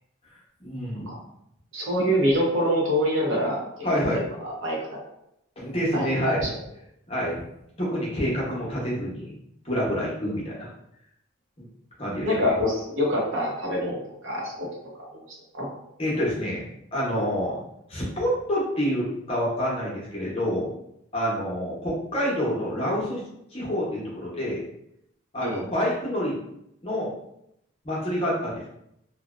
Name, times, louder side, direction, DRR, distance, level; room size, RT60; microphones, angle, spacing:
voice 1, 0.6-1.1 3.8-4.2 5.6-6.5 7.1-7.4 7.8-9.3 9.6-10.7 11.6-11.7 12.0-12.5 16.0-16.6 16.9-17.6 17.9-20.7 21.1-23.2 23.5-24.7 25.3-26.4 26.8-27.1 27.8-28.7, equal, 30° left, -5 dB, 0.7 m, -27 dB
voice 2, 1.7-5.0 5.9-6.5 12.3-14.7 14.9-15.1 15.5-15.7 25.4-25.6, equal, 70° right, -3 dB, 0.7 m, -26 dB
2.6 x 2.1 x 2.3 m, 0.77 s
head